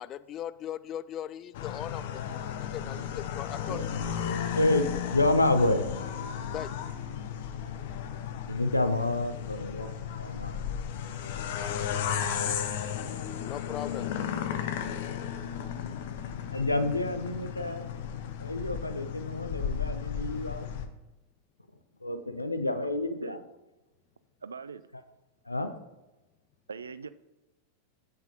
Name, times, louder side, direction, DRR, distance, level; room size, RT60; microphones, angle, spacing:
voice 1, 0.0-4.0 6.5-6.8 13.4-14.1, left 11 dB, 30° left, 0.3 m, -39 dB
sound 1, 1.5-20.9, left 8 dB, 50° left, 0.8 m, -34 dB
voice 2, 4.2-5.8 8.5-9.9 10.2-10.7 16.5-17.9 18.4-20.7 22.0-23.4 25.5-25.7, left 2 dB, 85° left, 0.7 m, -29 dB
voice 3, 23.1-23.4 24.4-24.8 26.7-27.1, right 5 dB, 75° right, 0.4 m, -41 dB
7.7 x 7.5 x 4.0 m
figure-of-eight pair, 90°, 0 cm